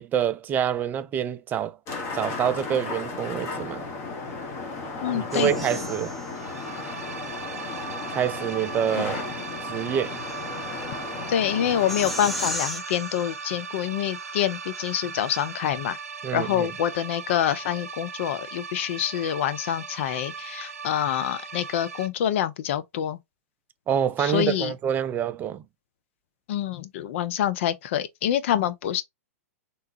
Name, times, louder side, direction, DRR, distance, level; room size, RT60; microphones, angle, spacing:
voice 1, 0.0-1.8 2.1-3.9 5.1-6.1 8.1-9.2 9.6-10.2 16.2-16.7 23.9-25.6, right 9 dB, 20° right, 0.4 m, -26 dB
sound 1, 1.9-12.6, left 3 dB, 35° left, 1.5 m, -34 dB
voice 2, 5.0-5.5 9.0-9.1 11.3-16.0 16.3-23.2 24.2-24.7 26.5-29.0, left 10 dB, 55° left, 0.6 m, -26 dB
sound 2, 5.3-7.3 8.7-15.9, equal, ahead, 0.8 m, -39 dB
sound 3, 6.3-22.1, right 5 dB, 80° right, 0.6 m, -38 dB
3.4 x 3.1 x 2.7 m
hypercardioid pair, 110°, 8 cm